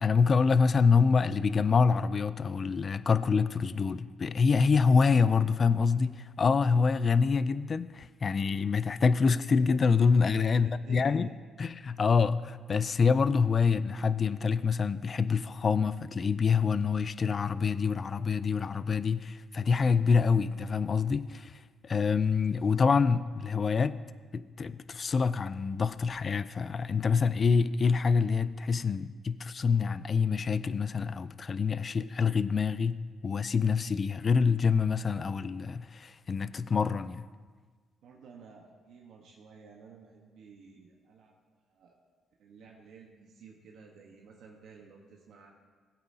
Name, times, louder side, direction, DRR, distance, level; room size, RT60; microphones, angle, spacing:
voice 1, 0.0-11.3 11.6-24.0 24.3-37.2, left 5 dB, 40° left, 0.3 m, -26 dB
voice 2, 10.5-11.4 38.0-42.0 42.4-45.5, right 5 dB, 75° right, 1.1 m, -53 dB
16.5 x 8.8 x 2.8 m
cardioid pair, 90°, 0 cm